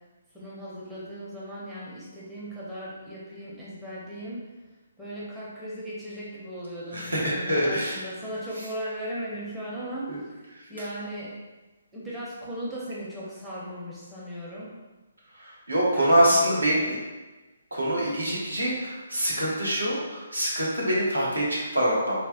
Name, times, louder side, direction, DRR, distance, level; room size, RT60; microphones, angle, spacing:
voice 1, 0.3-4.4 5.0-10.1 10.7-11.4 11.9-14.7 15.9-16.9, equal, 5° right, -8 dB, 0.6 m, -37 dB
voice 2, 6.9-8.0 10.1-10.2 15.4-17.0 17.7-22.3, equal, 75° right, -6 dB, 1.2 m, -25 dB
4.5 x 2.2 x 2.4 m, 1.2 s
figure-of-eight pair, 135°, 0 cm